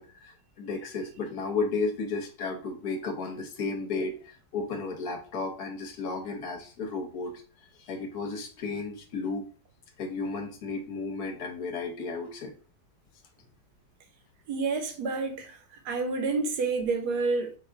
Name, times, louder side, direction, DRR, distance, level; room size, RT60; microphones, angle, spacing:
voice 1, 0.0-7.4 7.8-9.5 10.0-12.5, left 4 dB, 65° left, 1.2 m, -33 dB
voice 2, 14.5-15.6 15.8-17.6, right 4 dB, 70° right, 1.2 m, -29 dB
4.0 x 2.4 x 4.4 m
omnidirectional pair, 1.8 m